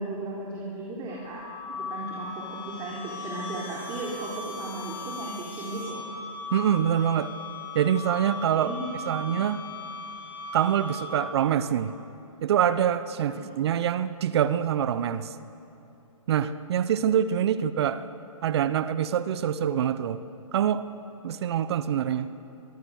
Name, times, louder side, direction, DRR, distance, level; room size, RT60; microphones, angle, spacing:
voice 1, 0.0-1.4 1.7-6.0 8.5-9.6 13.3-13.4, right 2 dB, 25° right, -4 dB, 3.8 m, -36 dB
sound 1, 1.1-11.5, left 3 dB, 40° left, 6.4 m, -38 dB
voice 2, 6.5-7.3 7.7-8.7 9.1-9.6 10.5-11.9 12.4-15.3 16.3-18.1 18.4-20.2 20.5-20.8 21.2-22.3, right 9 dB, 50° right, 14 dB, 1.0 m, -25 dB
24.0 x 23.5 x 6.6 m, 2.7 s
hypercardioid pair, 135°, 18 cm